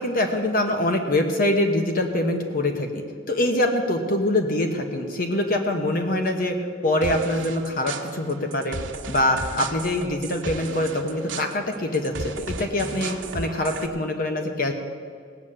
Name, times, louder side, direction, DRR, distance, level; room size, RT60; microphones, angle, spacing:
voice 1, 0.0-6.6 6.8-8.8 9.1-14.7, left 1 dB, 45° left, 4 dB, 1.1 m, -24 dB
sound 1, 7.0-13.9, right 3 dB, 80° right, 1.2 m, -35 dB
17.5 x 7.3 x 8.6 m, 2.1 s
head